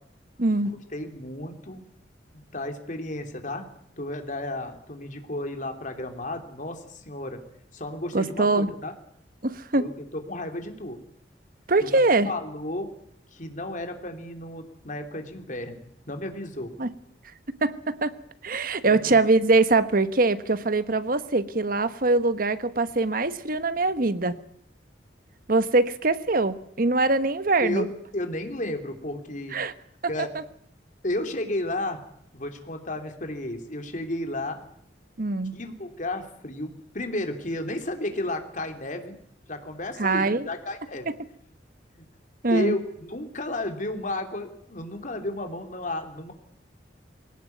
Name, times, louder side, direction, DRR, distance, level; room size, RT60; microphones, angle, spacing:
voice 1, 0.4-0.7 8.1-8.7 9.4-9.9 11.7-12.3 16.8-16.9 17.6-18.1 18.4-24.4 25.5-27.9 29.5-29.7 35.2-35.6 40.0-40.5 42.4-42.8, right 3 dB, 50° right, 13 dB, 1.2 m, -23 dB
voice 2, 0.9-1.8 2.3-3.6 4.0-7.4 7.7-8.9 9.8-11.0 11.8-12.9 13.3-16.7 18.9-19.2 27.6-29.6 30.1-30.3 31.0-32.0 32.3-34.6 35.5-39.2 39.5-41.1 42.0-42.1 42.5-46.3, left 1 dB, 45° left, 6 dB, 3.2 m, -33 dB
22.0 x 18.0 x 9.3 m, 0.68 s
head